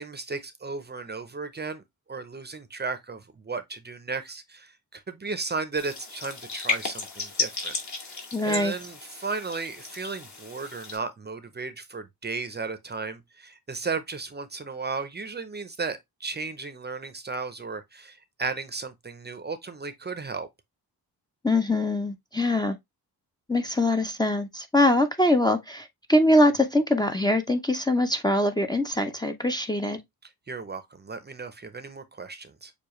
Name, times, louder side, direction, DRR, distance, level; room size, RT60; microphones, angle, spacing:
voice 1, 0.0-7.8 8.1-20.5 30.5-32.7, right 4 dB, 25° right, 0.6 m, -35 dB
sound 1, 5.8-11.0, left 4 dB, 45° left, 2.0 m, -34 dB
voice 2, 8.3-8.7 21.4-22.8 23.5-30.0, left 1 dB, 10° left, 0.6 m, -23 dB
6.8 x 2.4 x 3.0 m
cardioid pair, 100°, 39 cm